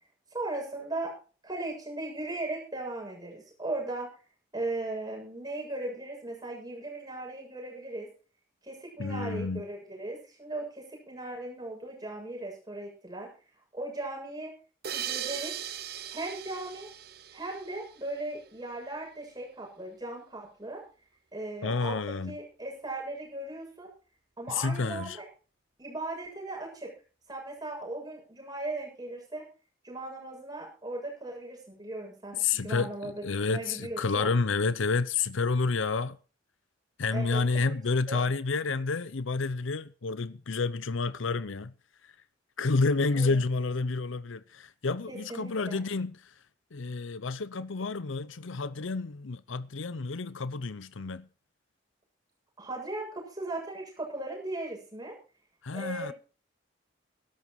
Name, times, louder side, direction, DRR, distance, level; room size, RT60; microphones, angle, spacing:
voice 1, 0.3-1.1 1.4-4.1 4.5-8.1 8.6-13.3 13.7-14.5 14.9-15.5 16.1-16.9 17.3-20.8 21.3-21.9 22.3-23.9 24.4-25.3 25.8-26.9 27.3-29.4 29.8-34.3 37.1-37.8 38.1-38.2 43.1-43.4 45.1-45.8 52.6-55.2 55.7-56.1, right 2 dB, 20° right, 7.5 m, -37 dB
voice 2, 9.0-9.6 21.6-22.3 24.5-25.2 32.4-36.2 37.0-41.7 42.0-42.1 42.6-46.3 46.7-51.3 55.6-56.1, left 4 dB, 75° left, 0.7 m, -30 dB
sound 1, 14.8-18.2, right 10 dB, 50° right, 0.9 m, -38 dB
14.5 x 13.0 x 4.7 m
head